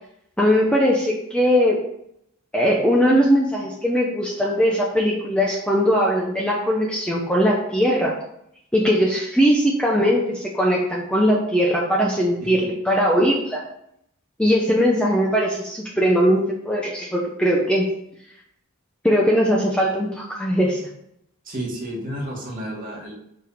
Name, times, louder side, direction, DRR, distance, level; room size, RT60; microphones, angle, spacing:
voice 1, 0.4-1.8 2.5-8.1 8.7-13.6 14.4-17.9 19.0-20.9, equal, 5° left, -3 dB, 0.9 m, -20 dB
voice 2, 21.4-23.1, right 1 dB, 40° right, -2 dB, 2.5 m, -31 dB
5.5 x 5.2 x 6.6 m, 0.76 s
head